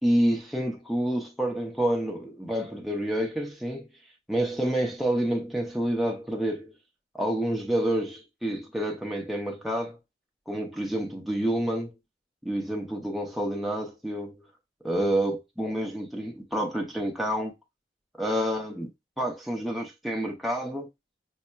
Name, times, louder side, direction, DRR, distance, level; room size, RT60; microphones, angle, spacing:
voice 1, 0.0-3.9 4.3-6.7 7.1-10.0 10.5-11.9 12.4-14.4 14.8-17.5 18.2-18.9 19.2-20.9, right 1 dB, ahead, 0.6 m, -28 dB
5.4 x 2.1 x 2.2 m
head